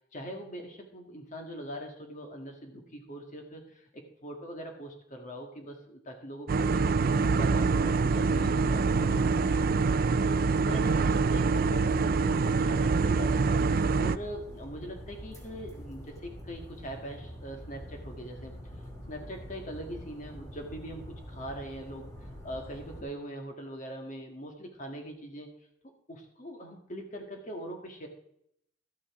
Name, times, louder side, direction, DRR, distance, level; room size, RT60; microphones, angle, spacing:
voice 1, 0.1-13.6 14.0-18.5 19.1-25.5 26.1-28.1, equal, 45° left, 3 dB, 1.7 m, -42 dB
sound 1, 6.5-14.2, right 4 dB, 50° right, 0.4 m, -25 dB
sound 2, 14.2-23.0, equal, 20° left, 2.6 m, -45 dB
12.5 x 8.9 x 3.7 m, 0.74 s
head